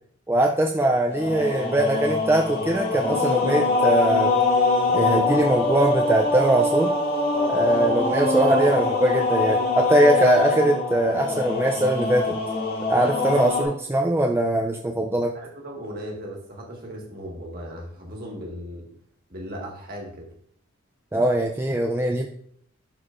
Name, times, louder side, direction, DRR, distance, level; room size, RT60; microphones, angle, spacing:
voice 1, 0.3-4.3 4.9-6.9 7.5-12.4 12.9-15.3 21.1-22.3, right 1 dB, 10° right, 1 dB, 0.3 m, -21 dB
sound 1, 1.1-13.6, left 3 dB, 50° left, 2.1 m, -23 dB
voice 2, 15.3-18.9 19.3-20.3, equal, 45° right, 0 dB, 1.6 m, -37 dB
11.0 x 4.5 x 2.5 m, 0.63 s
head